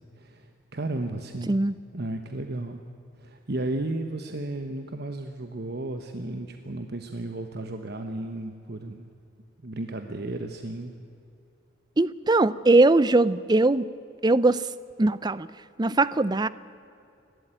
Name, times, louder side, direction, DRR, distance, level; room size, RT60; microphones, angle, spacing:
voice 1, 0.0-1.5 1.9-2.8 3.2-9.1 9.6-10.9, right 2 dB, 50° right, 6 dB, 1.1 m, -34 dB
voice 2, 12.0-13.9 14.2-14.6 15.0-15.5 15.8-16.5, right 2 dB, 20° right, 16 dB, 0.5 m, -20 dB
29.5 x 13.0 x 9.0 m, 2.6 s
head